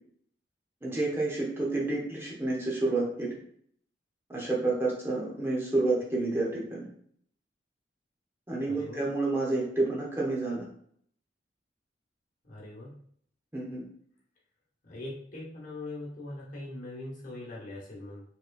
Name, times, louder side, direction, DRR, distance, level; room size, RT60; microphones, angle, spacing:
voice 1, 0.8-3.3 4.3-6.9 8.5-10.6 13.5-13.8, right 2 dB, 15° right, -4 dB, 1.0 m, -29 dB
voice 2, 8.7-9.0 12.4-12.9 14.8-18.2, left 2 dB, 50° left, -4 dB, 1.4 m, -41 dB
4.7 x 3.1 x 2.5 m, 0.64 s
head